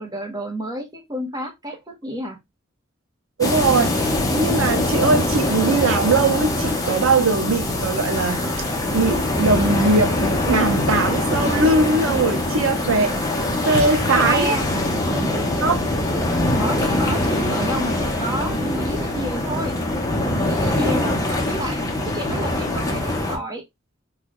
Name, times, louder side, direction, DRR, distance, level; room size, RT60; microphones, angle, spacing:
voice 1, 0.0-2.4 14.2-14.6 15.1-15.5 16.6-19.8 20.5-23.6, right 1 dB, 20° right, 0.9 m, -30 dB
sound 1, 3.4-23.4, left 1 dB, 15° left, 0.7 m, -23 dB
voice 2, 3.4-8.5 8.9-13.2 13.5-14.5 15.6-15.8 20.7-21.1, right 3 dB, 80° right, 0.7 m, -20 dB
3.9 x 2.4 x 3.0 m
head